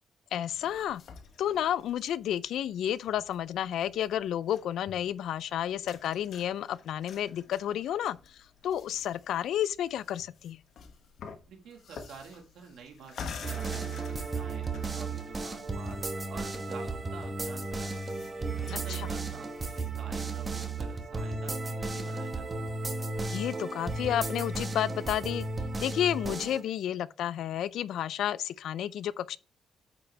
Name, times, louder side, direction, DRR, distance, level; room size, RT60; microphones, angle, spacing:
voice 1, 0.3-1.0 1.4-8.4 8.6-10.6 18.9-19.1 23.3-25.4 25.8-29.4, left 11 dB, 75° left, 0.4 m, -31 dB
sound 1, 0.5-19.9, left 6 dB, 55° left, 1.1 m, -50 dB
voice 2, 11.5-13.8 14.1-16.0 16.3-18.2 18.6-22.7, right 5 dB, 85° right, 1.7 m, -49 dB
sound 2, 13.4-26.6, right 3 dB, 20° right, 1.0 m, -34 dB
8.6 x 4.9 x 3.3 m
cardioid pair, 180°, 0 cm